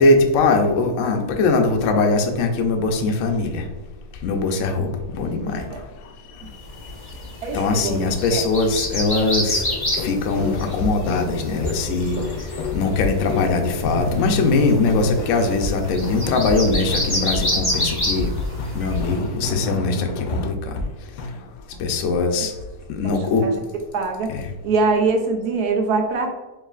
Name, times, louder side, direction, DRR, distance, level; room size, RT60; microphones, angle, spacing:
voice 1, 0.0-3.6 4.2-5.7 7.5-9.6 10.0-12.2 12.7-18.3 18.7-20.7 21.8-22.5 22.9-23.5 24.3-24.5, left 3 dB, 70° left, 4 dB, 0.8 m, -21 dB
sound 1, 6.8-19.2, left 1 dB, 20° left, 0.8 m, -29 dB
voice 2, 7.4-8.5 21.7-21.8 23.4-23.5 23.9-24.3 24.6-26.3, right 4 dB, 75° right, 2 dB, 1.2 m, -23 dB
sound 2, 9.5-15.7 16.0-17.4 17.7-20.9 21.2-21.4, left 3 dB, 90° left, 1.2 m, -28 dB
4.6 x 3.1 x 2.4 m, 1.2 s
omnidirectional pair, 1.7 m